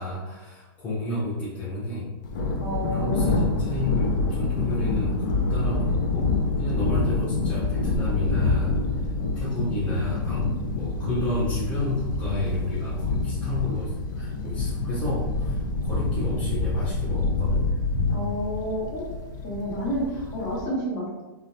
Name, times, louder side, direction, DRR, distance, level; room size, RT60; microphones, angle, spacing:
voice 1, 0.0-2.1 2.9-5.2 5.5-8.8 9.4-17.7, left 1 dB, 10° left, -9 dB, 0.6 m, -31 dB
Thunder, 2.2-20.7, left 3 dB, 55° left, 0.5 m, -27 dB
voice 2, 2.6-3.4 18.1-19.0 19.4-21.2, equal, 35° left, -4 dB, 1.0 m, -30 dB
3.1 x 2.1 x 2.5 m, 1.1 s
hypercardioid pair, 150°, 12 cm